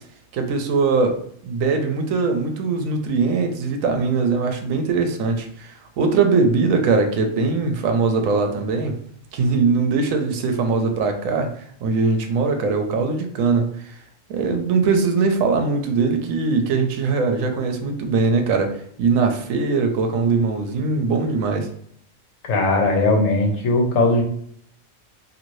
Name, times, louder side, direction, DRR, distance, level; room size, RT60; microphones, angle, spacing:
voice 1, 0.3-9.0 9.3-14.0 14.3-21.7, right 4 dB, 85° right, 5 dB, 1.0 m, -21 dB
voice 2, 22.5-24.2, left 2 dB, 75° left, 2 dB, 1.1 m, -18 dB
2.7 x 2.6 x 3.0 m, 0.64 s
omnidirectional pair, 1.4 m